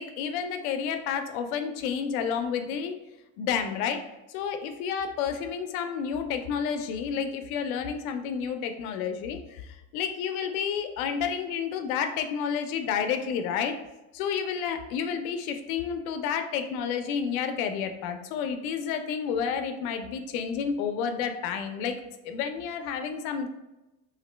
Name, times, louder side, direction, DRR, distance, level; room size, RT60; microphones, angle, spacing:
voice 1, 0.0-2.9 3.4-4.0 4.3-13.8 14.1-22.0 22.2-23.5, left 7 dB, 85° left, 7 dB, 0.5 m, -30 dB
2.9 x 2.6 x 3.2 m, 0.99 s
cardioid pair, 175°, 41 cm